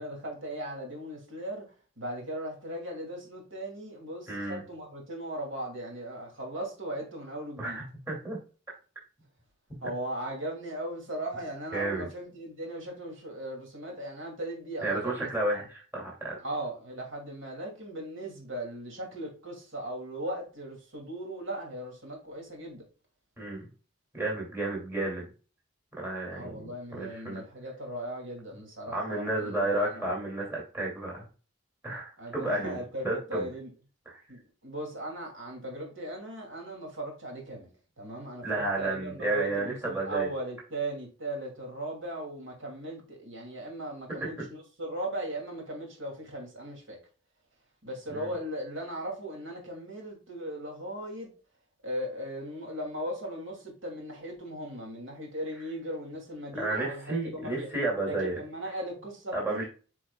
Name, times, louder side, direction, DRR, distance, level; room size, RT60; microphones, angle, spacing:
voice 1, 0.0-1.6 2.0-7.8 9.8-15.3 15.6-15.7 16.4-22.8 26.3-30.1 32.2-33.7 34.3-37.7 38.0-47.0 47.8-51.3 51.8-57.7 58.1-59.6, right 1 dB, 75° right, 2.5 m, -38 dB
voice 2, 4.3-4.6 7.6-8.4 11.7-12.1 14.8-16.4 23.4-23.7 24.1-25.3 26.0-26.7 26.9-27.4 28.9-31.3 31.8-32.8 33.0-33.4 38.4-40.3 48.1-48.3 56.6-58.4 59.3-59.6, right 2 dB, 10° right, 2.5 m, -31 dB
8.9 x 4.7 x 2.3 m
head